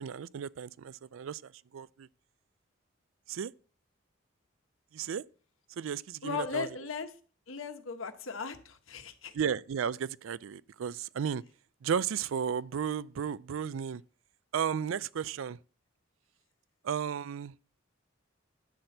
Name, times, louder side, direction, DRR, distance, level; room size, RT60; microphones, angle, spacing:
voice 1, 0.0-2.1 3.3-3.5 4.9-5.2 5.8-6.7 9.3-11.4 11.8-14.0 14.5-15.6 16.8-17.5, right 7 dB, 75° right, 0.4 m, -34 dB
voice 2, 6.2-7.1 7.5-9.3, left 5 dB, 80° left, 1.1 m, -37 dB
10.5 x 4.3 x 7.8 m
head